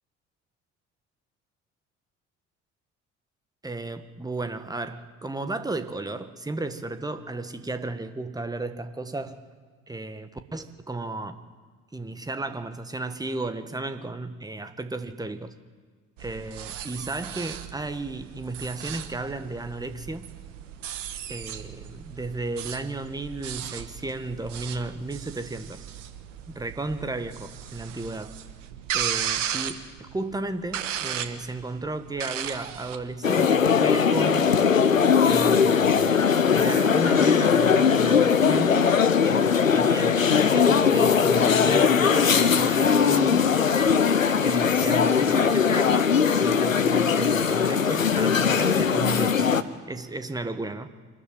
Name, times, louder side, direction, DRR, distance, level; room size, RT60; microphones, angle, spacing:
voice 1, 3.6-9.4 9.9-11.4 11.9-15.5 16.2-20.3 21.3-25.8 26.5-28.4 28.9-35.0 35.2-36.2 36.5-38.8 39.2-43.8 44.4-49.5 49.8-50.9, right 2 dB, 10° right, 9 dB, 1.6 m, -34 dB
sound 1, 16.2-33.1, right 10 dB, 70° right, 1.3 m, -36 dB
sound 2, 33.2-49.6, left 6 dB, 90° left, 0.7 m, -20 dB
24.5 x 13.5 x 9.0 m, 1.5 s
figure-of-eight pair, 50°, 39 cm